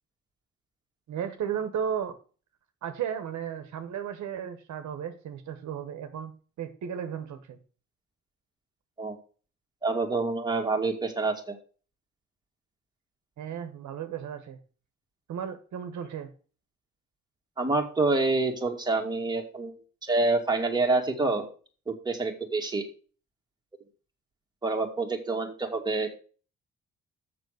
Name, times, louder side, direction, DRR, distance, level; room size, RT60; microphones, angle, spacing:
voice 1, 1.1-2.1 2.8-6.3 6.6-7.6 13.4-14.6 15.3-16.3, right 8 dB, 70° right, 8 dB, 1.2 m, -34 dB
voice 2, 9.8-11.6 17.6-19.7 20.0-21.5 21.9-22.8 24.6-26.1, right 3 dB, 15° right, 1 dB, 2.0 m, -27 dB
6.8 x 6.3 x 6.4 m, 0.39 s
cardioid pair, 90°, 30 cm